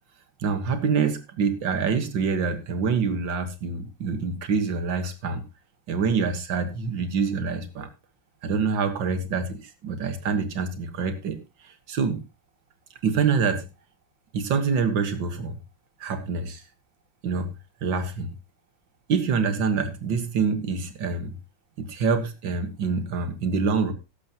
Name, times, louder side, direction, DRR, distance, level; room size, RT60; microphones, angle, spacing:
voice 1, 0.4-5.4 5.9-7.9 8.4-11.4 11.6-12.2 13.0-13.7 14.3-15.6 16.0-16.6 17.2-17.5 17.8-18.3 19.1-21.3 21.8-23.9, right 5 dB, 75° right, 9 dB, 2.3 m, -26 dB
14.0 x 11.5 x 3.0 m, 0.26 s
omnidirectional pair, 2.0 m